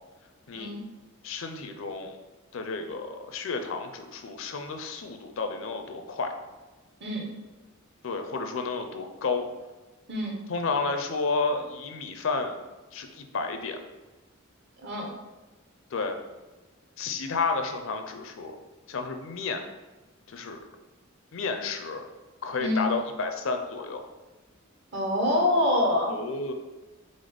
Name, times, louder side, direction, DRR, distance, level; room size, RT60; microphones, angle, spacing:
voice 1, 1.2-2.2 2.5-6.3 8.0-9.5 10.5-12.5 12.9-13.8 15.9-16.2 17.0-18.6 18.9-19.6 20.3-20.6 21.3-22.1 22.4-24.0 26.1-26.5, left 4 dB, 65° left, 6 dB, 0.5 m, -31 dB
voice 2, 10.1-10.4 14.8-15.1 22.6-22.9 24.9-26.2, left 1 dB, 50° right, -1 dB, 0.9 m, -26 dB
3.9 x 3.8 x 3.4 m, 1.2 s
head